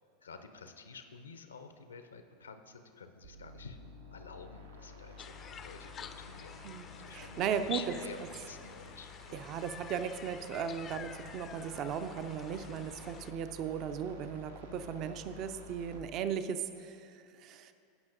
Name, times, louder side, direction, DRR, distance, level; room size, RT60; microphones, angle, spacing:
voice 1, 0.2-3.8 4.1-6.6 6.9-9.4, left 4 dB, 80° left, 8 dB, 0.5 m, -51 dB
sound 1, 3.2-16.0, left 3 dB, 80° right, 0.8 m, -52 dB
sound 2, 5.2-13.3, left 7 dB, 30° left, 0.4 m, -48 dB
voice 2, 6.6-7.9 9.3-17.7, right 8 dB, 45° right, 10 dB, 0.4 m, -37 dB
16.5 x 5.7 x 2.6 m, 2.5 s
figure-of-eight pair, 85°, 0 cm